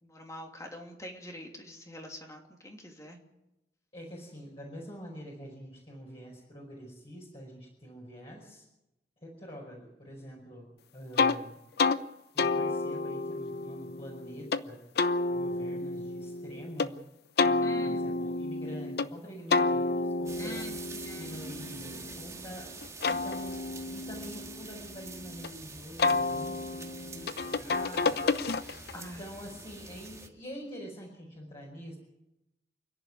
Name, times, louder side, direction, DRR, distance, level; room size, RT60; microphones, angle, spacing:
voice 1, 0.0-3.2 17.6-18.0 20.4-21.6 28.9-29.2, left 1 dB, 20° left, 2 dB, 2.9 m, -45 dB
voice 2, 3.9-8.7 9.2-11.6 12.3-14.8 15.3-17.0 17.4-20.7 21.2-23.6 23.9-28.6 28.9-32.0, equal, 35° left, -3 dB, 5.3 m, -46 dB
sound 1, 11.2-11.4 11.8-12.0 12.4-14.6 15.0-16.9 17.4-19.1 19.5-22.4 22.8-25.5 26.0-29.0, left 3 dB, 65° left, 0.8 m, -30 dB
sound 2, 20.3-30.3, right 3 dB, 20° right, 2.0 m, -46 dB
28.5 x 11.0 x 9.8 m, 0.92 s
head